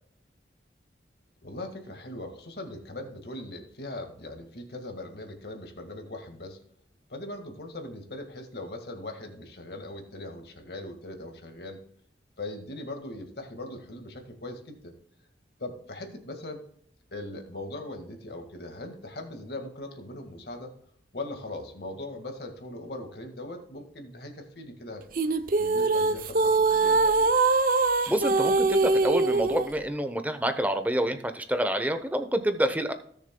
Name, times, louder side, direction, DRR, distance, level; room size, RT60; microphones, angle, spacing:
voice 1, 1.4-6.6 7.1-11.8 12.4-14.9 15.6-16.6 17.1-20.7 21.1-27.3, left 1 dB, 65° left, 4 dB, 1.8 m, -40 dB
sound 1, 25.1-29.7, right 3 dB, 50° right, 0.6 m, -23 dB
voice 2, 28.1-32.9, right 1 dB, 10° right, 8 dB, 0.8 m, -27 dB
17.5 x 6.7 x 2.2 m, 0.64 s
head